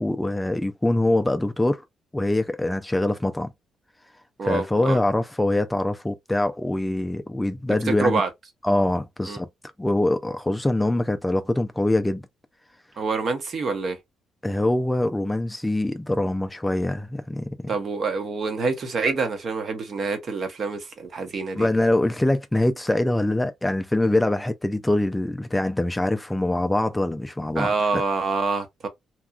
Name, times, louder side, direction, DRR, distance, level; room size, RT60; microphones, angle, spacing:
voice 1, 0.0-1.8 2.1-3.5 4.4-8.2 8.6-9.5 9.8-12.2 14.4-17.6 21.6-28.0, left 1 dB, 10° left, 0.3 m, -24 dB
voice 2, 4.4-5.0 8.0-8.3 9.2-9.4 13.0-14.0 17.7-21.7 27.6-28.9, right 4 dB, 50° right, 0.9 m, -26 dB
2.8 x 2.3 x 2.3 m
cardioid pair, 90°, 0 cm